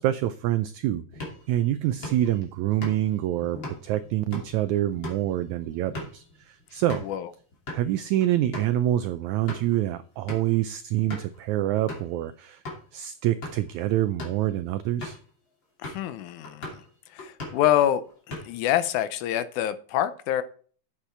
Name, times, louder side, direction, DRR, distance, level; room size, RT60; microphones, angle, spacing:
voice 1, 0.0-7.1 7.7-12.6 12.9-15.2, right 13 dB, 90° right, 12 dB, 1.6 m, -26 dB
sound 1, 1.1-7.2 7.5-7.8 8.2-8.3 8.5-8.7 9.2-9.8 10.3-10.6 11.1-11.4 11.9-12.1 12.6-12.8 13.3-13.7 14.1-14.4 15.0-15.3 15.8-16.1 16.4-16.9 17.2-17.7 18.1-18.7, left 2 dB, 35° left, 3.2 m, -39 dB
voice 2, 15.8-16.8 17.1-18.0 18.3-20.4, left 11 dB, 75° left, 12 dB, 1.9 m, -26 dB
8.6 x 8.1 x 4.4 m, 0.44 s
omnidirectional pair, 3.9 m